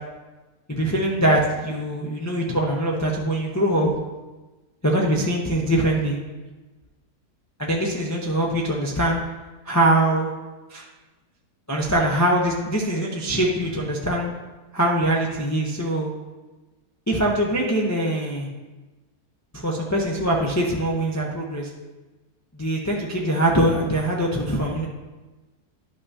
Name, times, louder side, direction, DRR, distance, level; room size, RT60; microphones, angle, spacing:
voice 1, 0.7-4.0 4.8-6.2 7.6-9.2 9.6-10.3 10.7-10.9 11.7-14.3 14.7-16.1 17.1-18.5 19.5-21.7 22.6-24.9, right 1 dB, 20° left, -2 dB, 0.5 m, -22 dB
11.0 x 5.6 x 2.8 m, 1.2 s
omnidirectional pair, 1.7 m